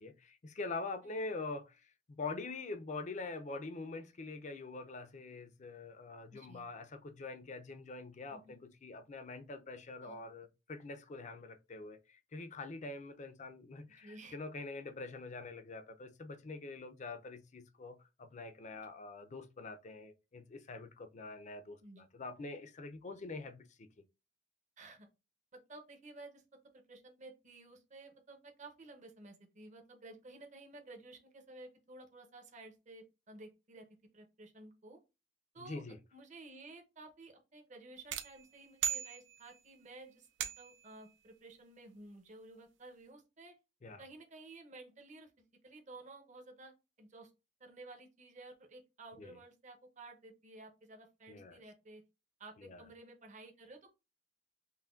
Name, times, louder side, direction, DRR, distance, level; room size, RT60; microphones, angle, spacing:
voice 1, 0.0-23.9 35.6-36.0 43.8-44.0 49.2-49.4 51.3-51.6 52.6-52.8, left 3 dB, 40° left, 0.5 m, -45 dB
voice 2, 6.3-6.6 8.3-8.6 10.0-10.2 14.0-14.4 21.8-22.1 24.8-25.1 25.7-26.4 26.7-33.8 34.1-35.0 35.5-35.8 36.1-40.3 40.6-43.5 44.0-47.3 47.6-52.0 52.4-53.9, right 2 dB, 40° right, 0.8 m, -54 dB
sound 1, 38.1-39.7 40.4-40.9, right 9 dB, 90° right, 0.5 m, -39 dB
5.7 x 2.2 x 2.4 m
head